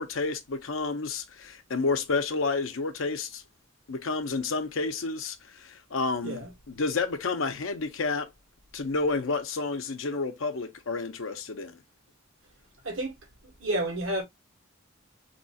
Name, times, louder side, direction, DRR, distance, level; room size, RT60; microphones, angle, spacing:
voice 1, 0.0-3.4 3.9-8.3 8.7-11.8, left 3 dB, 75° left, 0.7 m, -30 dB
voice 2, 13.6-14.2, right 1 dB, 80° right, 1.4 m, -30 dB
3.2 x 2.9 x 2.7 m
head